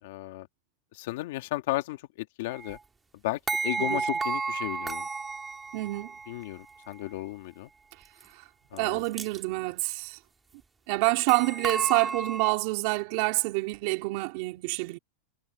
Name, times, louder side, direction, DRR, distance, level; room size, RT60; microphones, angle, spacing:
voice 1, 0.0-0.5 0.9-2.8 3.2-5.1 6.3-7.7 8.7-9.0, left 18 dB, 55° left, 2.1 m, -34 dB
sound 1, 2.5-2.8 3.5-6.5 8.2-8.3 8.8-8.9 9.1-9.4 11.3-12.5, right 4 dB, 10° right, 2.0 m, -32 dB
voice 2, 5.7-6.1 8.3-8.4 8.8-10.2 10.9-15.0, right 24 dB, 45° right, 3.7 m, -27 dB
supercardioid pair, 170°, 0 cm